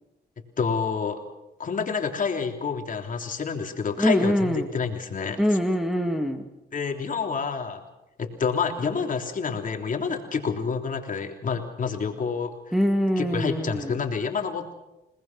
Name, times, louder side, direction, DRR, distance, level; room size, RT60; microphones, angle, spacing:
voice 1, 0.6-1.2 1.6-5.4 6.7-7.8 8.2-12.5 13.2-14.7, left 5 dB, 50° left, 3 dB, 3.4 m, -28 dB
voice 2, 4.0-4.7 5.4-6.5 12.7-13.9, equal, ahead, 3 dB, 2.2 m, -24 dB
29.0 x 19.5 x 6.1 m, 0.97 s
cardioid pair, 85°, 18 cm